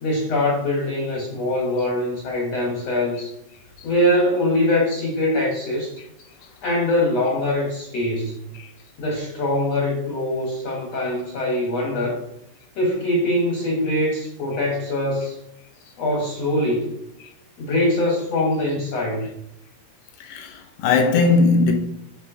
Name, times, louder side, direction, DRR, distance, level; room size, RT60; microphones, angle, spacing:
voice 1, 0.0-3.3 3.8-6.0 6.6-8.5 9.0-12.2 12.8-15.4 16.0-16.9 17.6-19.3, left 1 dB, 70° left, 1.6 m, -23 dB
voice 2, 20.2-21.7, left 4 dB, 85° left, 3.1 m, -18 dB
9.6 x 3.7 x 3.7 m
omnidirectional pair, 4.7 m